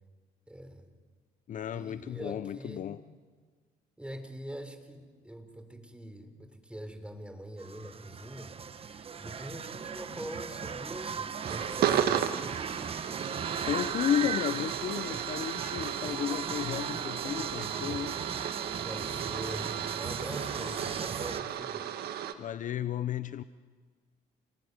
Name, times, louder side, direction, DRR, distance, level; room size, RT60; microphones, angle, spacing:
voice 1, 0.5-0.9 1.7-3.0 4.0-12.3 18.8-19.7 20.0-21.9, right 1 dB, 5° right, 3.9 m, -43 dB
voice 2, 1.5-3.0 13.6-18.2 20.6-20.7 22.4-23.4, left 10 dB, 50° left, 0.8 m, -33 dB
sound 1, 7.6-21.4, right 6 dB, 35° right, 1.2 m, -38 dB
sound 2, 11.4-22.3, right 10 dB, 70° right, 1.8 m, -34 dB
28.5 x 19.5 x 9.7 m
cardioid pair, 110°, 17 cm